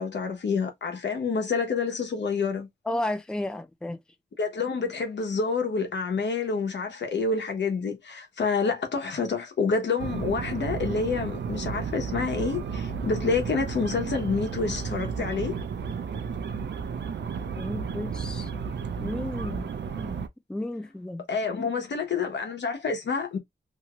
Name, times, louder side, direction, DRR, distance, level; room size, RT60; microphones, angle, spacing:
voice 1, 0.0-2.7 4.4-15.5 21.3-23.4, left 4 dB, 80° left, 1.0 m, -28 dB
voice 2, 2.9-4.0 17.6-18.5 19.0-20.2 20.5-21.2, left 1 dB, 5° left, 0.4 m, -33 dB
sound 1, 10.0-20.3, right 6 dB, 85° right, 0.5 m, -33 dB
2.8 x 2.4 x 2.9 m
wide cardioid pair, 120°, 18 cm